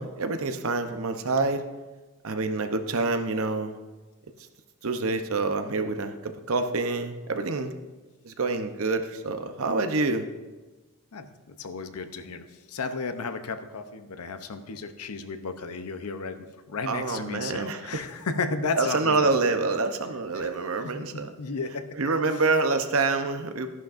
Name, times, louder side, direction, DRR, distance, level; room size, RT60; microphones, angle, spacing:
voice 1, 0.0-1.6 2.2-3.8 4.8-7.7 8.2-10.3 16.9-18.0 18.8-21.3 22.0-23.7, right 3 dB, 65° right, 8 dB, 0.8 m, -27 dB
voice 2, 11.1-19.3 20.4-20.5 20.8-21.9, left 4 dB, 85° left, 9 dB, 0.7 m, -34 dB
13.0 x 11.0 x 2.6 m, 1.2 s
head